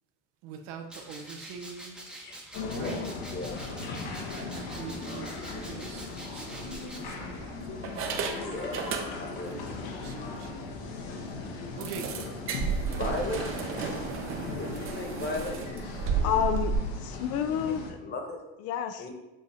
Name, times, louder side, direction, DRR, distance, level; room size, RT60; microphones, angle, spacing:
voice 1, 0.4-2.0 2.7-3.0 4.3-7.7 9.7-10.6 11.8-12.1 12.9-13.1, right 6 dB, 70° right, 5 dB, 0.9 m, -44 dB
sound 1, 0.9-7.0, right 1 dB, 5° right, 0.8 m, -46 dB
sound 2, 2.5-17.9, left 3 dB, 80° left, 1.2 m, -38 dB
voice 2, 2.7-4.0 8.3-9.5 12.9-13.4 14.5-15.5 17.7-18.4 19.0-19.1, left 3 dB, 35° left, 3 dB, 1.3 m, -37 dB
sound 3, 5.8-6.0 6.7-7.4 7.8-9.5 9.8-10.0 10.4-10.5 10.8-10.9 11.8-16.7, right 5 dB, 45° right, 0.9 m, -33 dB
voice 3, 16.2-18.0 18.6-19.1, left 9 dB, 55° left, 8 dB, 0.5 m, -29 dB
7.6 x 2.7 x 4.8 m, 1.0 s
supercardioid pair, 125°, 30 cm